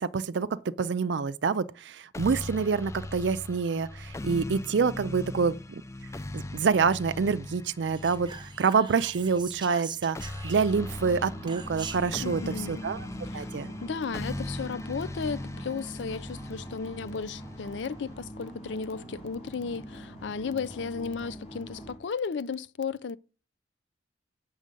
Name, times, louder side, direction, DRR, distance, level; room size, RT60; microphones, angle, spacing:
voice 1, 0.0-5.8 6.3-8.3 8.6-10.2 10.4-13.1 13.3-13.7, right 5 dB, 70° right, 0.4 m, -27 dB
sound 1, 2.1-18.1, left 1 dB, 15° left, 0.4 m, -40 dB
Whispering, 7.9-10.9 11.5-12.2, right 6 dB, 25° right, 0.8 m, -43 dB
sound 2, 10.7-22.0, right 1 dB, 35° left, 3.7 m, -43 dB
voice 2, 12.2-12.8 13.2-13.5 13.8-23.2, left 5 dB, 70° left, 0.4 m, -34 dB
7.5 x 6.4 x 5.2 m
head